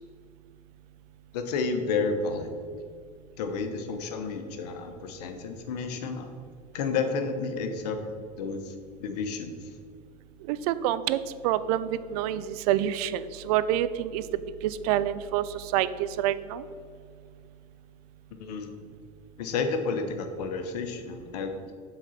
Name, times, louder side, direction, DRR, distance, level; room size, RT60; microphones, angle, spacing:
voice 1, 1.3-2.5 3.4-6.3 6.7-8.1 8.4-8.7 9.0-9.7 18.3-18.7 19.4-21.5, left 4 dB, 75° left, 6 dB, 0.9 m, -31 dB
voice 2, 10.5-14.2 14.6-16.6, right 12 dB, 70° right, 14 dB, 0.4 m, -27 dB
7.3 x 3.9 x 5.6 m, 2.1 s
hypercardioid pair, 80°, 20 cm